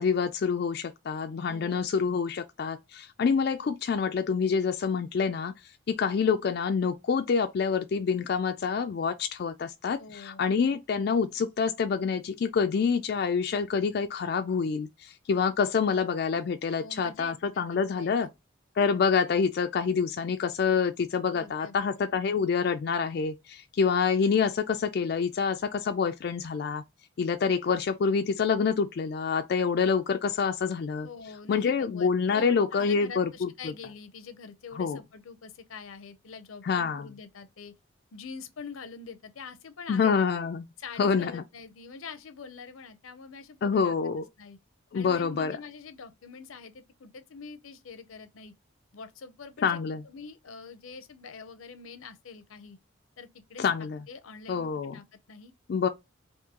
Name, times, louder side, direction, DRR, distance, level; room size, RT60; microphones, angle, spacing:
voice 1, 0.0-5.5 5.9-18.3 18.8-26.8 27.2-31.1 31.5-33.7 34.8-35.0 36.6-37.1 39.9-40.7 41.0-41.4 43.6-44.2 44.9-45.6 49.6-50.0 53.6-54.0 54.5-55.0 55.7-55.9, left 5 dB, 50° left, 0.3 m, -27 dB
voice 2, 1.5-1.9 10.0-10.5 16.8-18.3 21.3-21.9 31.0-37.7 38.1-40.1 40.8-44.6 44.9-48.5 48.9-52.8 53.2-53.6 54.1-55.5, left 5 dB, 85° left, 0.6 m, -45 dB
3.6 x 2.6 x 2.8 m
head